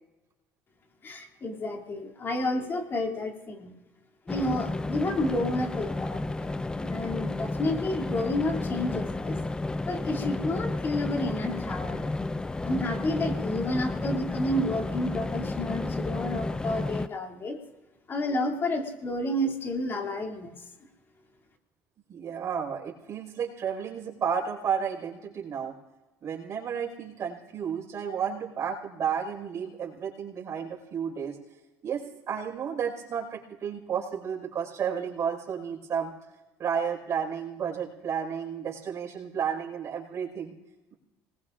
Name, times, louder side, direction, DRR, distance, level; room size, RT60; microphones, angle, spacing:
voice 1, 1.0-3.7 4.3-6.5 6.8-9.4 9.9-12.1 12.6-17.6 18.1-20.5, left 1 dB, 35° left, 2 dB, 2.8 m, -30 dB
sound 1, 4.3-17.1, left 2 dB, 10° left, 0.5 m, -32 dB
voice 2, 22.1-25.7 26.2-31.4 31.8-36.1 36.6-40.5, right 7 dB, 45° right, 0 dB, 5.0 m, -32 dB
26.5 x 20.0 x 2.6 m, 1.1 s
supercardioid pair, 100°, 7 cm